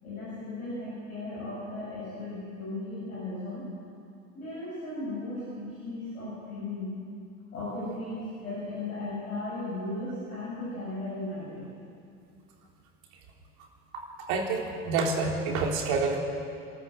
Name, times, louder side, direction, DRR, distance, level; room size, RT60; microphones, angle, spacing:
voice 1, 0.0-3.6 4.3-6.9 7.5-11.6, left 2 dB, 70° left, -8 dB, 7.5 m, -36 dB
voice 2, 14.3-16.2, right 4 dB, 50° right, 0 dB, 3.9 m, -28 dB
27.5 x 13.5 x 7.8 m, 2.4 s
figure-of-eight pair, 75°, 44 cm